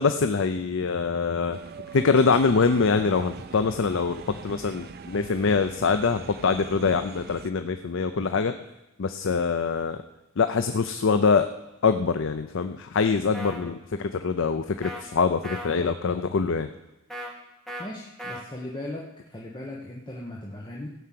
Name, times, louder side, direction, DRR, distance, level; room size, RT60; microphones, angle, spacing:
voice 1, 0.0-1.6 1.9-8.5 9.0-10.0 10.4-11.5 11.8-16.7, left 5 dB, 65° left, 9 dB, 0.5 m, -24 dB
sound 1, 1.5-7.5, right 5 dB, 50° right, 0.6 m, -43 dB
sound 2, 13.3-13.6 14.8-15.0 15.4-15.7 17.1-17.3 17.7-17.9 18.2-18.4, equal, ahead, 1.9 m, -36 dB
voice 2, 17.8-20.9, left 1 dB, 20° left, -3 dB, 1.2 m, -38 dB
15.5 x 5.7 x 7.6 m, 0.98 s
head